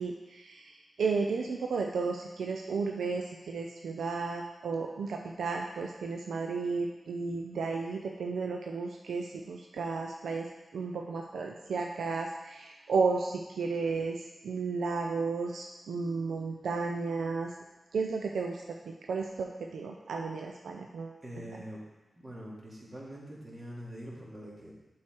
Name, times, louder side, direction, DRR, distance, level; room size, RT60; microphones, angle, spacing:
voice 1, 0.0-17.5 17.9-21.6, right 4 dB, 90° right, 2 dB, 0.4 m, -33 dB
voice 2, 21.2-21.8 22.2-24.7, equal, 45° right, -5 dB, 2.4 m, -44 dB
7.3 x 4.6 x 4.5 m, 1.1 s
cardioid pair, 45°, 0 cm